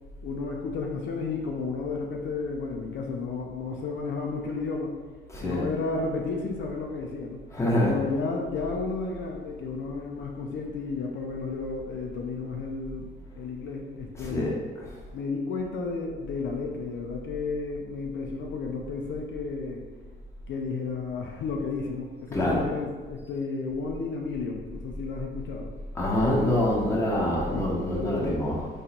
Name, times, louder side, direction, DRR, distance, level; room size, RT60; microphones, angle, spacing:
voice 1, 0.2-4.9 5.4-7.4 7.8-14.7 15.1-19.8 20.5-25.7 27.5-28.5, left 4 dB, 70° left, 0 dB, 0.5 m, -32 dB
voice 2, 5.3-5.7 7.5-8.0 14.1-14.5 14.8-14.9 22.3-22.7 25.9-28.7, left 1 dB, 15° left, -5 dB, 1.0 m, -25 dB
3.8 x 3.1 x 2.9 m, 1.4 s
cardioid pair, 90°, 20 cm